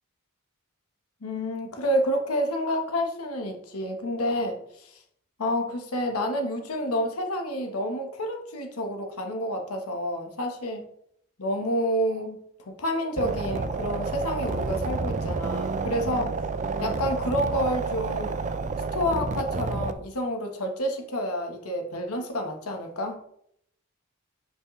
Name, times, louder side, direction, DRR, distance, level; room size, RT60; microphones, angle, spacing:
voice 1, 1.2-5.0 5.4-10.8 11.4-12.4 12.7-16.3 16.8-18.4 18.9-23.2, equal, 90° left, 1.2 m, -29 dB
sound 1, 13.2-19.9, right 3 dB, 35° right, 0.4 m, -30 dB
7.8 x 5.3 x 3.2 m
head